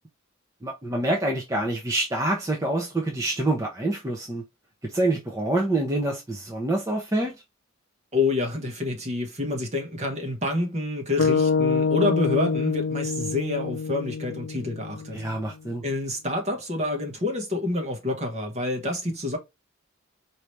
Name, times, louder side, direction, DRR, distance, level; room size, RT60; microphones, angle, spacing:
voice 1, 0.6-4.4 4.8-7.3 15.1-15.8, right 1 dB, 15° right, 0.8 m, -26 dB
voice 2, 8.1-15.2 15.8-19.4, left 2 dB, 35° right, 1.3 m, -28 dB
sound 1, 11.2-15.4, left 5 dB, 80° left, 0.4 m, -26 dB
4.8 x 2.8 x 3.2 m
head